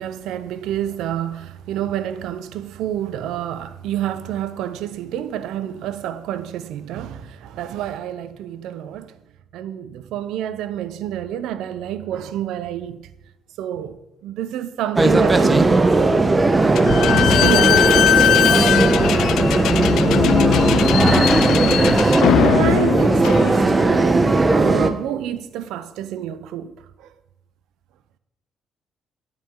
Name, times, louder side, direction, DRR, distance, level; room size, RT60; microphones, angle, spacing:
voice 1, 0.0-9.2 9.5-13.1 13.6-18.2 22.3-27.1, right 10 dB, 90° right, 0.6 m, -29 dB
sound 1, 15.0-24.9, right 2 dB, 25° right, 1.0 m, -17 dB
Slam / Squeak, 16.7-24.0, left 11 dB, 80° left, 0.3 m, -19 dB
13.0 x 11.0 x 3.8 m
cardioid pair, 90°, 0 cm